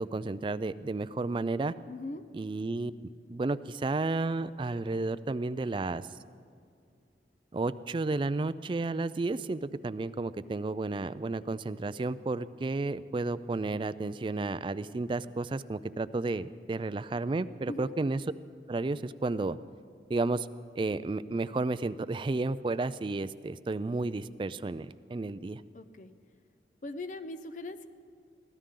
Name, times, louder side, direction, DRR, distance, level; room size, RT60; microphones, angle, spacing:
voice 1, 0.0-1.7 2.3-2.9 3.3-6.0 7.5-18.2 18.7-19.6 20.1-20.5 20.8-25.6, right 3 dB, 30° right, 14 dB, 0.3 m, -32 dB
voice 2, 1.9-2.2 17.7-17.9 25.7-26.1 26.8-27.9, left 2 dB, 45° left, 11 dB, 0.7 m, -40 dB
23.0 x 15.5 x 3.8 m, 2.3 s
head